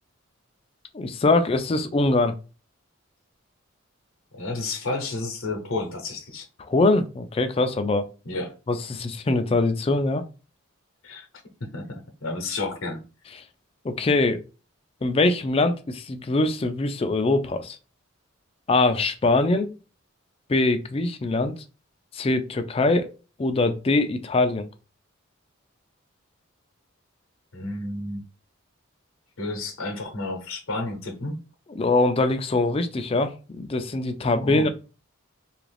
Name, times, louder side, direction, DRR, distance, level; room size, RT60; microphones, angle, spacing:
voice 1, 0.9-2.3 6.7-8.0 8.7-10.2 13.8-14.4 15.0-17.8 18.7-19.7 20.5-21.5 22.1-23.1 23.4-24.7 31.8-34.7, left 2 dB, 25° left, 0.3 m, -23 dB
voice 2, 4.3-6.5 8.2-8.5 11.0-11.3 11.6-13.0 27.5-28.2 29.4-31.4 34.4-34.7, left 2 dB, 75° left, 0.8 m, -31 dB
2.8 x 2.5 x 3.2 m
head